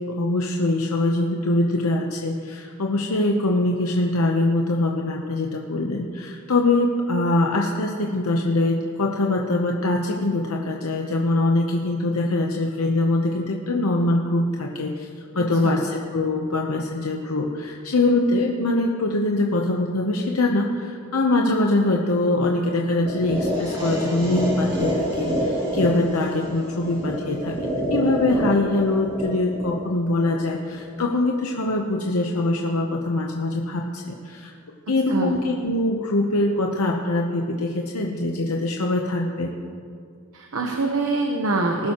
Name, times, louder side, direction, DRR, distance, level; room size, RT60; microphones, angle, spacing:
voice 1, 0.0-15.1 15.3-27.6 27.9-34.5 34.9-39.5, left 2 dB, 75° left, 0 dB, 0.9 m, -23 dB
sound 1, 23.0-31.0, equal, 25° right, 2.9 m, -27 dB
voice 2, 40.3-41.9, right 2 dB, 70° right, 2 dB, 1.0 m, -24 dB
20.0 x 12.0 x 3.0 m, 2.3 s
head